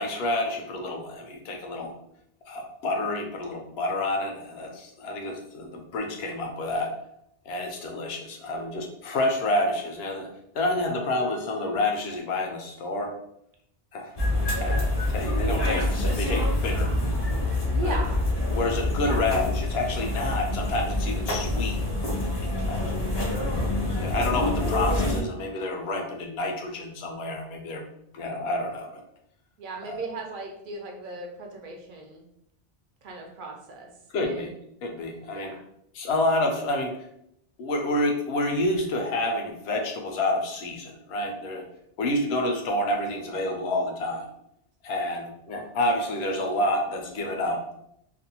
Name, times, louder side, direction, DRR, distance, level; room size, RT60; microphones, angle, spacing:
voice 1, 0.0-1.9 2.5-6.9 7.5-10.3 10.5-13.1 13.9-14.1 14.4-16.9 17.8-18.0 18.5-21.8 22.7-23.0 23.9-27.8 28.1-29.0 29.9-30.0 34.1-34.5 34.8-35.6 35.9-37.0 37.6-41.6 42.0-44.3 44.8-47.8, left 1 dB, 80° left, 2 dB, 0.8 m, -29 dB
sound 1, 14.2-25.2, left 1 dB, 35° left, 0.5 m, -26 dB
voice 2, 17.7-18.2 19.0-19.3 29.6-32.2 33.0-33.9 34.2-34.5 35.3-35.6, right 2 dB, 60° right, 1 dB, 0.6 m, -37 dB
2.6 x 2.1 x 2.7 m, 0.76 s
omnidirectional pair, 1.1 m